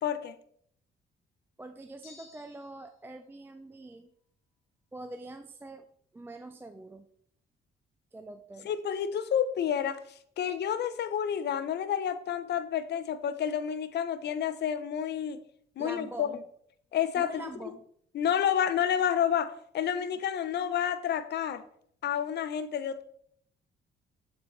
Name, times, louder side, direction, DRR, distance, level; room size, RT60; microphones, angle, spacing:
voice 1, 0.0-0.4 8.6-10.0 10.4-15.4 15.8-16.3 16.9-17.4 18.1-21.6 22.0-23.0, left 9 dB, 60° left, 0.5 m, -29 dB
voice 2, 1.6-4.1 4.9-5.9 6.1-7.1 8.1-8.7 15.8-16.4 17.2-17.9, right 2 dB, 10° right, 0.3 m, -44 dB
sound 1, 2.0-3.0, left 5 dB, 85° left, 0.9 m, -55 dB
6.6 x 4.5 x 3.2 m
cardioid pair, 90°, 20 cm